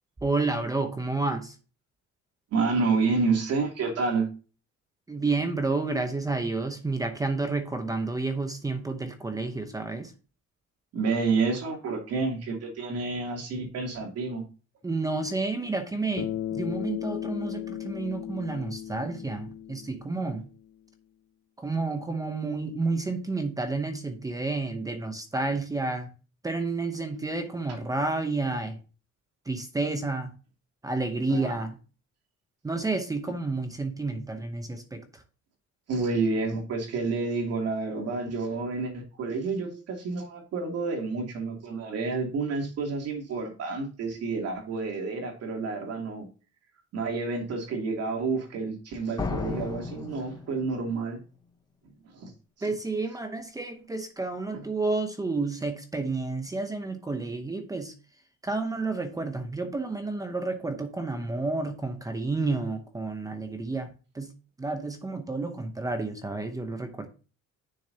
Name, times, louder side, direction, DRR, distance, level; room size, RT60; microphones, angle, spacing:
voice 1, 0.2-1.6 5.1-10.1 14.8-20.4 21.6-26.1 26.4-28.8 29.5-30.3 30.8-31.8 32.6-35.2 52.6-57.9 58.4-64.3 64.6-67.1, right 3 dB, 10° right, 7 dB, 0.8 m, -30 dB
voice 2, 2.5-4.3 10.9-14.4 31.2-31.6 35.9-46.3 46.9-51.2 52.0-52.3 52.6-52.7 54.5-54.7, right 4 dB, 55° right, 2 dB, 2.8 m, -29 dB
Bass guitar, 16.2-20.5, left 11 dB, 45° left, 0.8 m, -36 dB
sound 1, 49.2-51.0, left 4 dB, 15° left, 1.0 m, -34 dB
10.5 x 6.6 x 2.8 m, 0.35 s
cardioid pair, 175°, 30 cm